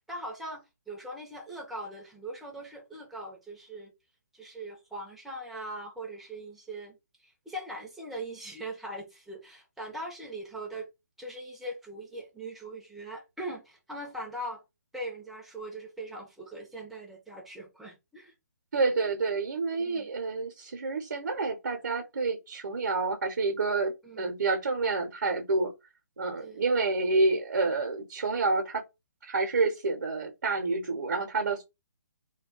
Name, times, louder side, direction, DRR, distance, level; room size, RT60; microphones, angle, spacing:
voice 1, 0.1-3.9 4.3-10.9 11.2-14.6 14.9-18.3 19.8-20.1 24.0-24.3 26.4-26.7, right 1 dB, ahead, 0.6 m, -41 dB
voice 2, 18.7-25.7 26.2-28.8 29.2-31.6, right 3 dB, 65° right, 0.7 m, -28 dB
2.3 x 2.3 x 3.6 m
figure-of-eight pair, 135°, 9 cm